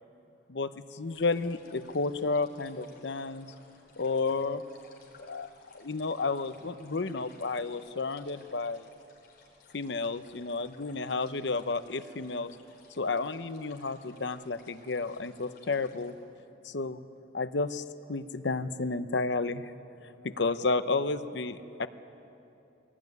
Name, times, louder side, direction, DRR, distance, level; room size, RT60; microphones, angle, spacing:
voice 1, 0.5-3.5 4.0-4.6 5.2-5.5 5.7-8.9 9.7-12.5 13.0-16.1 16.6-17.0 17.3-17.8 18.1-19.7 20.2-21.9, left 3 dB, 70° left, 12 dB, 0.8 m, -31 dB
sound 1, 1.1-16.1, left 3 dB, 55° left, 4.5 m, -59 dB
20.5 x 17.5 x 9.4 m, 2.8 s
head